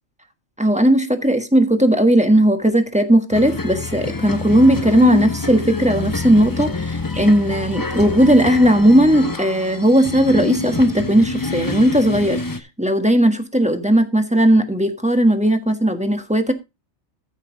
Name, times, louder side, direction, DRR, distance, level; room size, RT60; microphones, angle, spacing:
voice 1, 0.6-12.4 12.8-16.5, right 1 dB, 5° right, 1.2 m, -16 dB
sound 1, 3.3-12.6, left 3 dB, 20° left, 0.7 m, -26 dB
14.0 x 5.8 x 3.9 m
omnidirectional pair, 1.3 m